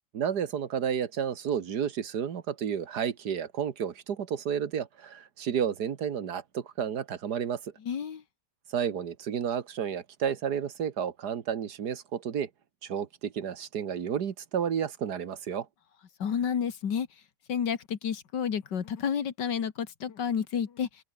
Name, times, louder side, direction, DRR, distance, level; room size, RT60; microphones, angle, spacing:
voice 1, 0.1-7.7 8.7-12.5 12.8-15.7, right 8 dB, 70° right, 1.9 m, -31 dB
voice 2, 7.8-8.2 16.2-17.1 17.5-20.9, left 7 dB, 85° left, 2.3 m, -30 dB
omnidirectional pair, 1.8 m